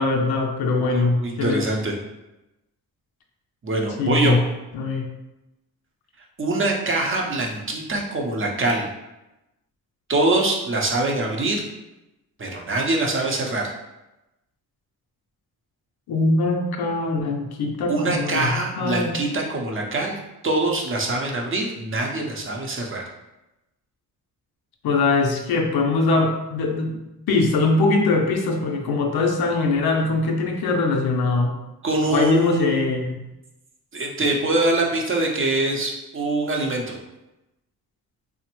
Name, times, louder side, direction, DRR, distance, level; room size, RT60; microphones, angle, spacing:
voice 1, 0.0-1.6 4.0-4.4 4.7-5.1 16.1-19.2 24.8-31.6 32.1-33.2, left 3 dB, 70° left, 2 dB, 0.6 m, -22 dB
voice 2, 0.8-2.0 3.6-4.3 6.4-8.9 10.1-11.6 12.4-13.7 17.9-23.0 31.8-32.8 33.9-36.9, right 2 dB, 30° right, 0 dB, 0.7 m, -24 dB
3.2 x 2.1 x 3.0 m, 0.96 s
supercardioid pair, 60°, 39 cm